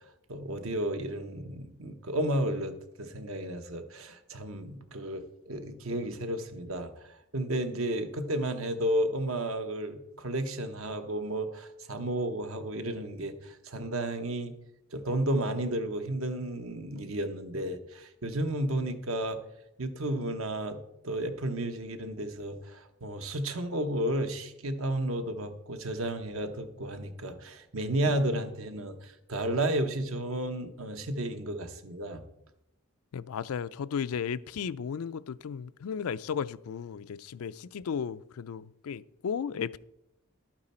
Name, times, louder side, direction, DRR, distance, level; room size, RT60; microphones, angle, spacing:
voice 1, 0.3-14.5 14.9-19.4 19.8-32.2, right 1 dB, 65° right, 1.0 m, -32 dB
voice 2, 33.1-39.8, left 7 dB, 75° left, 0.4 m, -35 dB
12.0 x 8.8 x 4.3 m
head